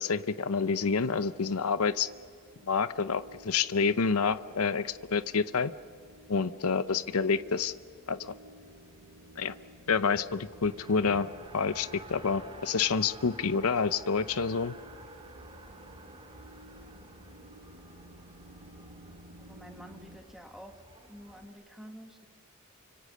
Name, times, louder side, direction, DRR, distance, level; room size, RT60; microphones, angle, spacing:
voice 1, 0.0-2.1 2.7-5.7 6.3-7.7 8.1-8.3 9.4-9.5 9.9-11.3 11.5-14.7, left 5 dB, 85° left, 14 dB, 0.7 m, -28 dB
sound 1, 0.8-20.2, right 1 dB, 70° right, 6.1 m, -54 dB
Race car auto racing, 10.1-21.4, right 2 dB, 25° right, 2.3 m, -51 dB
voice 2, 19.4-20.8 21.1-22.3, equal, ahead, 4 dB, 1.8 m, -49 dB
29.0 x 25.5 x 6.5 m, 2.1 s
head